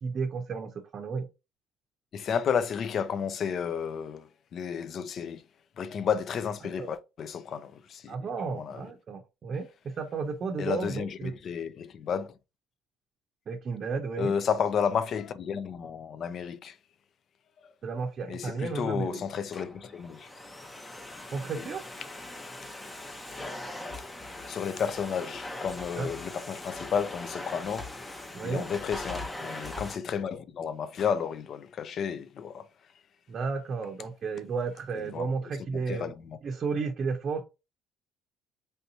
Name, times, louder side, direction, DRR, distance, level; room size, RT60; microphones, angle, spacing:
voice 1, 0.0-1.3 6.8-6.9 8.1-11.3 13.5-14.3 17.8-19.2 21.3-21.8 26.0-26.1 28.3-28.6 33.3-36.1 36.4-37.4, right 4 dB, 45° right, 0.6 m, -33 dB
voice 2, 2.1-5.4 5.8-8.2 8.5-8.8 10.6-12.3 14.2-16.8 17.6-17.7 18.3-20.3 21.5-21.7 24.4-27.9 28.4-32.7 35.0-35.3 35.7-36.4, left 7 dB, 55° left, 0.4 m, -32 dB
Domestic sounds home sounds, 19.3-30.0, left 2 dB, 15° left, 0.7 m, -41 dB
3.4 x 2.7 x 2.7 m
cardioid pair, 95°, 0 cm